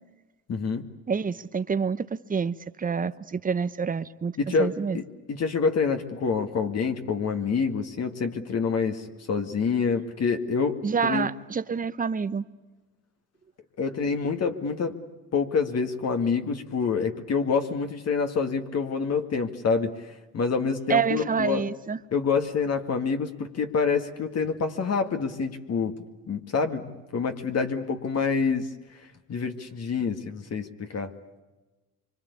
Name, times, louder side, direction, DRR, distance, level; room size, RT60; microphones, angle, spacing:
voice 1, 0.5-0.9 4.4-5.0 5.3-11.3 13.8-14.9 15.3-21.6 22.1-26.0 26.3-28.7 29.3-31.1, left 5 dB, 40° left, 2.1 m, -27 dB
voice 2, 1.1-5.0 10.8-12.4 20.9-22.0, right 6 dB, 20° right, 1.0 m, -27 dB
25.0 x 24.0 x 8.4 m
supercardioid pair, 95°, 38 cm